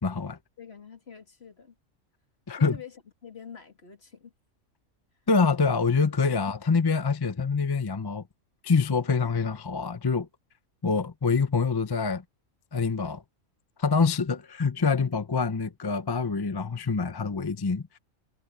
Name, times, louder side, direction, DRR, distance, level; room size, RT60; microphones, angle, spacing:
voice 1, 0.0-0.4 2.5-2.8 5.3-8.2 8.6-10.3 10.8-12.2 12.7-13.2 13.8-18.0, left 4 dB, 30° left, 0.5 m, -25 dB
voice 2, 0.6-1.7 2.5-4.3, left 7 dB, 45° left, 2.6 m, -46 dB
omnidirectional pair, 1.4 m